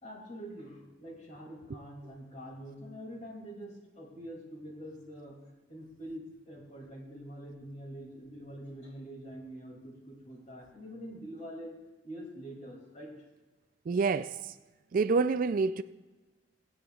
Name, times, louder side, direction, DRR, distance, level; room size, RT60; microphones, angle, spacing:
voice 1, 0.0-5.4 5.7-11.8 12.0-13.1, equal, 40° left, 2.6 m, -45 dB
voice 2, 13.9-14.3 14.9-15.8, right 4 dB, 50° right, 0.3 m, -27 dB
23.0 x 8.5 x 2.4 m
head